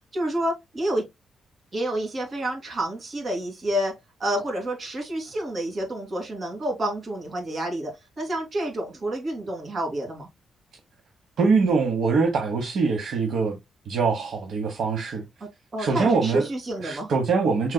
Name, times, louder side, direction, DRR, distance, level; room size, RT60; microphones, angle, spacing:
voice 1, 0.1-1.0 1.7-3.9 4.2-10.3 15.7-17.1, right 1 dB, 45° right, 3.0 m, -29 dB
voice 2, 11.4-13.6 13.9-15.2 15.8-16.5 16.8-17.7, right 4 dB, 75° right, 1.1 m, -23 dB
6.2 x 3.8 x 2.2 m
cardioid pair, 95°, 0 cm